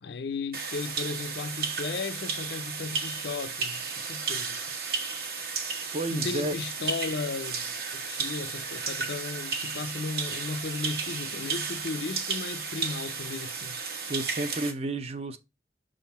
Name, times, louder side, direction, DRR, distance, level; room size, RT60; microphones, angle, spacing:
voice 1, 0.0-4.6 6.1-13.8, left 4 dB, 70° left, 0.5 m, -35 dB
sound 1, 0.5-14.7, right 5 dB, 55° right, 1.1 m, -33 dB
voice 2, 5.9-6.6 14.1-15.4, right 2 dB, 35° right, 0.6 m, -31 dB
6.4 x 3.8 x 4.1 m
head